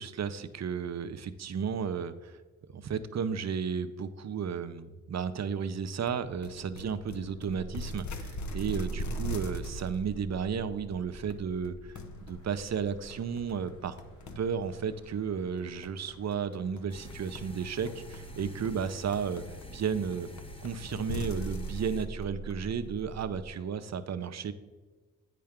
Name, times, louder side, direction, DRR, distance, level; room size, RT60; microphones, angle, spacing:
voice 1, 0.0-2.4 2.7-14.0 14.4-19.4 19.7-20.3 20.6-24.5, right 6 dB, 55° right, 11 dB, 0.6 m, -33 dB
sound 1, 6.1-23.5, equal, 60° left, 0.8 m, -41 dB
sound 2, 11.9-18.5, left 1 dB, 75° left, 2.2 m, -59 dB
sound 3, 16.9-22.1, left 1 dB, 15° left, 0.9 m, -49 dB
8.5 x 5.7 x 3.6 m, 1.3 s
supercardioid pair, 45°, 32 cm